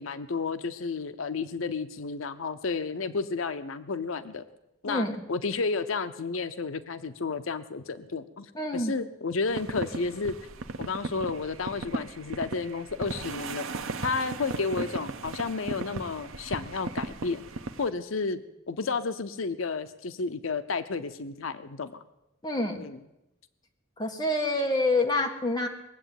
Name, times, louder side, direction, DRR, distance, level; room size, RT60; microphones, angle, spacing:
voice 1, 0.0-4.5 4.8-10.3 10.8-13.7 14.0-17.4 17.8-22.0 22.8-23.0, left 4 dB, 80° left, 10 dB, 0.7 m, -32 dB
voice 2, 8.5-8.9 22.4-22.8 24.0-25.7, left 2 dB, 20° left, 2 dB, 1.7 m, -27 dB
sound 1, 9.5-17.9, right 3 dB, 85° right, 0.8 m, -37 dB
20.0 x 7.9 x 9.2 m, 0.93 s
head